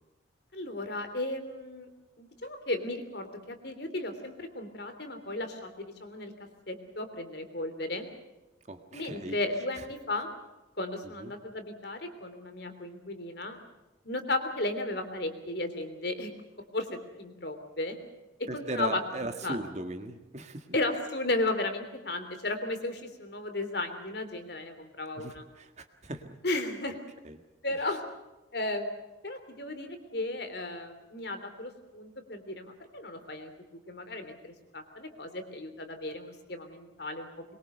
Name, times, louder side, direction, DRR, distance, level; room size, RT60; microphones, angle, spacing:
voice 1, 0.5-1.9 2.2-6.3 6.7-8.1 8.9-10.3 10.8-13.6 14.0-16.3 16.7-18.0 18.4-19.0 19.4-19.6 20.7-25.4 26.4-27.0 27.6-28.0 28.5-33.5 33.9-37.4, left 2 dB, 55° left, 7 dB, 3.2 m, -35 dB
voice 2, 8.7-9.4 9.8-9.9 11.0-11.3 18.5-20.8 25.2-26.6 27.2-27.4, right 2 dB, 35° right, 7 dB, 1.8 m, -38 dB
23.0 x 22.5 x 6.8 m, 1.0 s
head